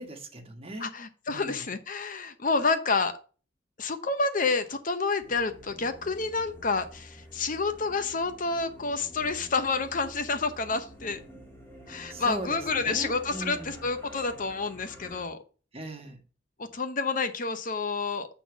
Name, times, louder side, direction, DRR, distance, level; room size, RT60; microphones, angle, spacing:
voice 1, 0.0-0.9 1.3-1.7 12.1-13.9 15.7-16.2, right 1 dB, 30° right, 1.4 m, -39 dB
voice 2, 0.8-3.2 3.8-11.2 11.9-15.4 16.6-18.3, left 4 dB, 45° left, 0.8 m, -29 dB
sound 1, 5.2-15.3, equal, 10° left, 2.0 m, -48 dB
7.9 x 4.1 x 6.0 m
head